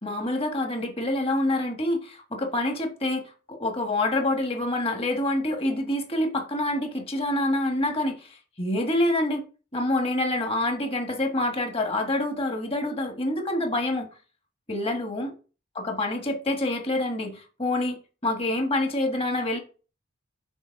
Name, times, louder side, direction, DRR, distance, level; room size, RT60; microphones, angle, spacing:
voice 1, 0.0-3.2 3.5-9.4 9.7-14.1 14.7-15.3 15.7-19.6, left 1 dB, 30° left, 1.6 m, -27 dB
7.2 x 4.1 x 5.3 m
head